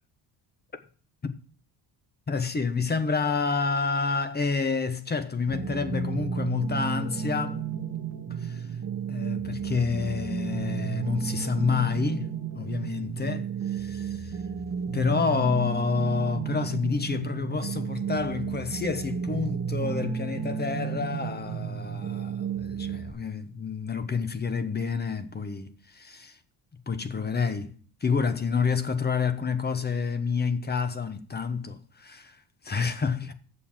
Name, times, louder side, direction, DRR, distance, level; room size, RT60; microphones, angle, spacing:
voice 1, 2.3-7.7 8.3-8.8 9.1-14.4 14.9-26.4 26.9-33.3, left 5 dB, 20° left, 1.1 m, -29 dB
sound 1, 5.5-23.1, right 7 dB, 35° right, 1.4 m, -32 dB
7.0 x 6.9 x 7.3 m
cardioid pair, 110°, 43 cm